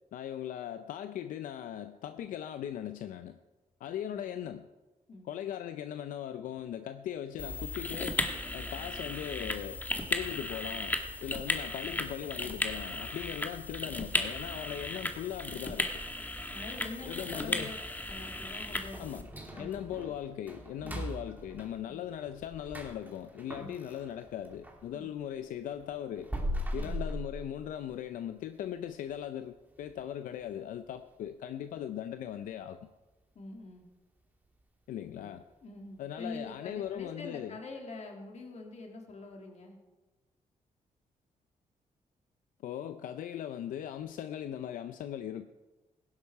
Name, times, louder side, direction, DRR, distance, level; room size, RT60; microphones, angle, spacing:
voice 1, 0.1-3.4 3.8-4.7 5.2-8.2 8.5-9.8 10.1-16.0 17.0-17.7 19.0-19.3 19.6-26.3 26.7-32.9 34.9-35.4 36.0-37.6 42.6-45.5, left 10 dB, 85° left, 10 dB, 0.6 m, -39 dB
sound 1, 7.4-19.2, left 2 dB, 15° left, 1.5 m, -35 dB
voice 2, 16.5-17.8 18.1-19.9 20.8-21.1 21.8-22.0 23.5-23.8 24.9-25.2 26.7-27.1 33.3-33.9 35.1-35.4 35.6-39.8, left 3 dB, 55° left, 2 dB, 2.9 m, -45 dB
sound 2, 18.9-24.9 25.2-28.1 28.4-28.5 29.0-29.1 29.7-30.0 30.3-30.4 30.9-31.0, equal, 15° right, 2.6 m, -40 dB
16.0 x 11.5 x 4.7 m, 1.2 s
cardioid pair, 90°, 13 cm